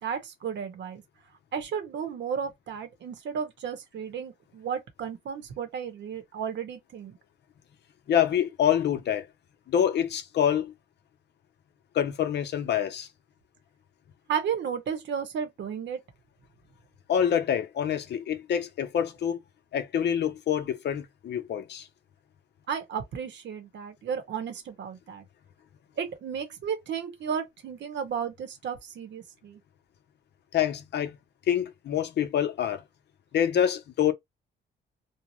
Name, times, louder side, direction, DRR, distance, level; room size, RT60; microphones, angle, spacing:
voice 1, 0.0-1.0 1.5-7.2 14.3-16.0 22.7-25.2 26.0-29.6, right 7 dB, 65° right, 1.0 m, -33 dB
voice 2, 8.1-9.3 9.7-10.7 11.9-13.1 17.1-19.4 19.7-21.9 30.5-31.2 31.5-32.8 33.3-34.1, left 9 dB, 60° left, 0.6 m, -26 dB
2.7 x 2.0 x 2.9 m
cardioid pair, 90°, 20 cm